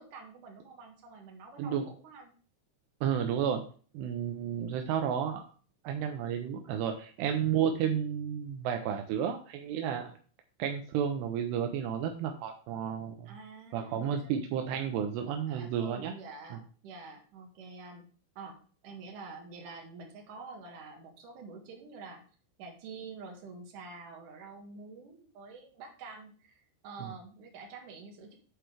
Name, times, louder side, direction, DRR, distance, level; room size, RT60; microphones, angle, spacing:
voice 1, 0.0-2.3 13.3-14.2 15.5-18.0 18.4-18.6 18.8-22.2 22.6-28.4, right 4 dB, 55° right, 0 dB, 2.8 m, -47 dB
voice 2, 3.0-3.6 3.9-5.4 5.8-10.1 10.6-13.3 13.7-16.1 16.5-16.6 27.0-27.1, right 8 dB, 85° right, 4 dB, 2.7 m, -32 dB
8.9 x 4.5 x 4.9 m, 0.42 s
omnidirectional pair, 5.1 m